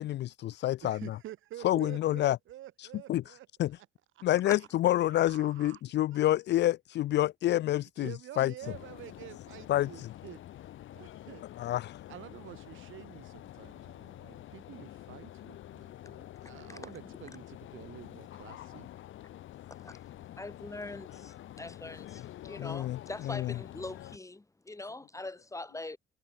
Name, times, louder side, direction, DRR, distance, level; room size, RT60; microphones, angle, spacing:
voice 1, 0.0-1.0 1.6-2.4 3.1-3.2 3.6-3.7 4.2-8.5 9.7-9.9 11.6-12.0 22.6-23.0 23.3-23.5, left 14 dB, 60° left, 0.4 m, -28 dB
voice 2, 0.8-3.9 4.2-4.3 4.6-4.7 5.1-5.8 6.1-6.2 8.0-10.4 10.9-11.4 12.1-18.9, right 14 dB, 80° right, 1.7 m, -49 dB
sound 1, 8.6-24.2, left 13 dB, 80° left, 4.0 m, -48 dB
voice 3, 16.4-16.8 19.7-26.0, left 2 dB, 15° left, 3.5 m, -43 dB
cardioid pair, 90°, 20 cm